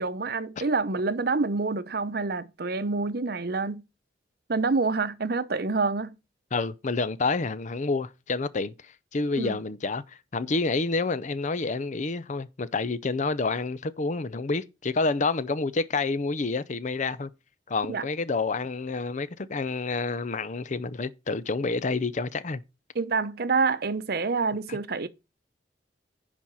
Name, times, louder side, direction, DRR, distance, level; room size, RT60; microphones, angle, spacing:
voice 1, 0.0-3.8 4.5-6.1 9.4-9.6 17.9-18.0 22.9-25.1, right 4 dB, 60° right, 0.8 m, -27 dB
voice 2, 6.5-17.3 17.7-22.6 24.7-24.8, left 3 dB, 45° left, 0.6 m, -29 dB
10.5 x 4.3 x 6.0 m
head